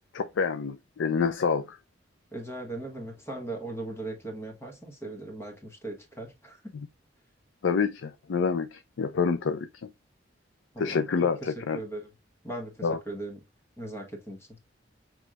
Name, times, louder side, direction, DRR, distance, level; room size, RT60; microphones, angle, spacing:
voice 1, 0.1-1.8 6.7-6.9 7.6-9.7 10.8-11.8 12.8-13.0, left 5 dB, 75° left, 0.4 m, -27 dB
voice 2, 2.3-6.6 10.7-11.0 11.4-12.1 12.4-13.4 13.8-14.5, right 2 dB, 15° left, 1.2 m, -38 dB
6.1 x 3.1 x 2.3 m
head